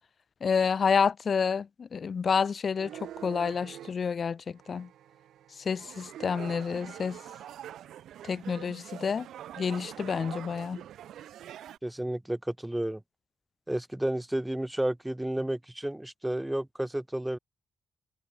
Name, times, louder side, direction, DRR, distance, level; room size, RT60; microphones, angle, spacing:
voice 1, 0.4-2.9 3.2-4.9 5.6-7.2 8.2-9.3 9.6-10.8, left 6 dB, 40° left, 0.4 m, -29 dB
sound 1, 2.7-3.9 4.6-11.8, right 11 dB, 85° right, 1.1 m, -45 dB
voice 2, 11.8-13.0 13.7-17.4, right 1 dB, 5° right, 1.0 m, -31 dB
cardioid pair, 130°, 0 cm